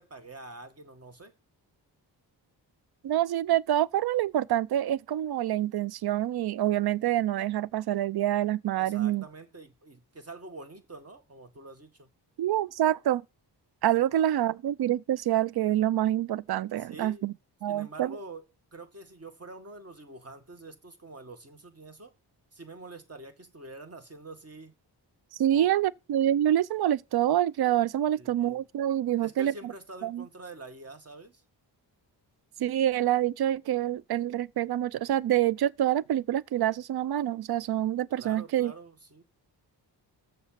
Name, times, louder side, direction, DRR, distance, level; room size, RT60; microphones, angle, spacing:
voice 1, 0.0-1.3 8.8-12.1 14.1-14.2 16.8-17.2 17.7-18.5 18.7-22.1 22.5-24.8 25.5-25.7 28.1-28.6 29.2-31.4 38.2-39.2, right 2 dB, 35° right, 2.0 m, -46 dB
voice 2, 3.0-9.2 12.4-13.2 13.8-17.3 17.6-18.2 25.4-29.7 30.0-30.2 32.6-38.7, right 12 dB, 60° right, 0.5 m, -26 dB
7.1 x 5.5 x 7.3 m
cardioid pair, 70°, 43 cm